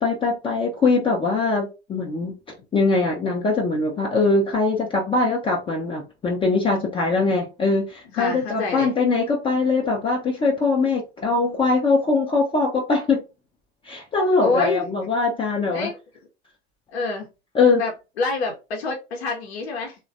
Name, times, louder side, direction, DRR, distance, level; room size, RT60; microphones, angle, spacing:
voice 1, 0.0-2.3 2.7-13.2 13.8-15.9 17.5-17.8, left 3 dB, 15° left, 0.4 m, -22 dB
voice 2, 8.1-8.9 14.4-14.8 15.7-16.0 16.9-17.3 17.8-17.9 18.2-19.9, left 3 dB, 70° left, 0.7 m, -26 dB
3.1 x 2.2 x 2.5 m
figure-of-eight pair, 75°, 33 cm